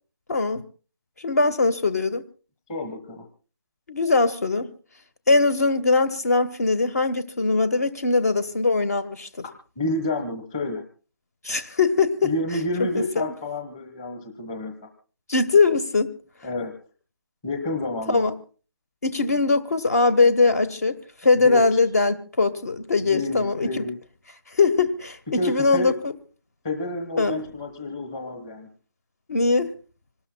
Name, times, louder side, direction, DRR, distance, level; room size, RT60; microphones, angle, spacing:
voice 1, 0.3-0.6 1.2-2.2 3.9-4.7 5.3-9.3 11.4-12.3 12.9-13.3 15.3-16.1 18.1-18.3 19.0-23.8 24.5-26.1 27.2-27.4 29.3-29.7, left 3 dB, 40° left, 11 dB, 1.2 m, -21 dB
voice 2, 2.7-3.2 9.4-10.8 12.2-14.7 16.4-16.7 17.4-18.2 21.4-21.6 23.0-23.9 25.3-25.9 26.6-28.7, left 2 dB, 10° left, 4 dB, 1.2 m, -29 dB
26.5 x 19.0 x 2.2 m, 0.38 s
figure-of-eight pair, 170°, 14 cm